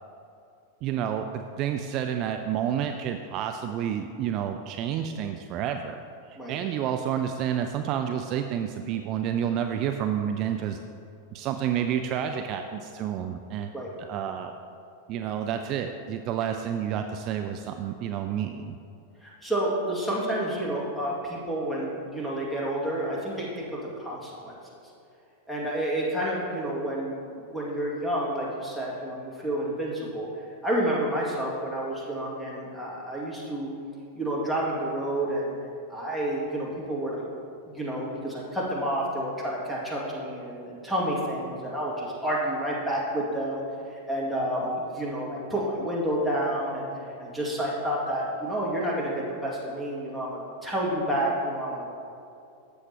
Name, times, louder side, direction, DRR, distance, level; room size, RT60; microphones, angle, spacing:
voice 1, 0.8-6.0 6.3-10.8 11.3-13.7 14.0-14.5 15.1-18.8, right 9 dB, 40° right, 6 dB, 0.4 m, -29 dB
voice 2, 19.2-24.5 25.5-30.3 30.6-33.7 34.2-35.5 35.9-37.3 37.7-43.6 43.9-46.9 47.2-51.9, right 1 dB, 5° left, -5 dB, 2.3 m, -29 dB
13.0 x 8.0 x 3.0 m, 2.6 s
figure-of-eight pair, 90°, 0 cm